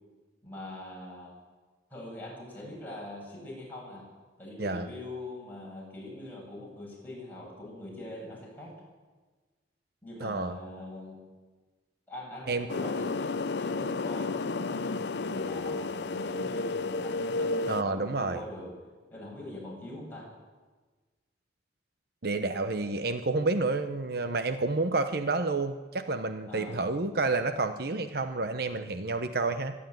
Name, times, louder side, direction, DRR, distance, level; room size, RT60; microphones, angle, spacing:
voice 1, 0.4-1.3 1.9-4.1 4.4-8.7 10.0-11.2 12.1-18.7 19.1-20.3 26.5-26.8, left 1 dB, 10° left, -3 dB, 7.9 m, -43 dB
voice 2, 10.2-10.5 12.5-12.7 17.7-18.4 22.2-29.7, right 3 dB, 60° right, 9 dB, 0.9 m, -29 dB
sound 1, 12.7-17.8, left 3 dB, 70° left, 0.6 m, -32 dB
24.5 x 11.5 x 9.3 m, 1.3 s
head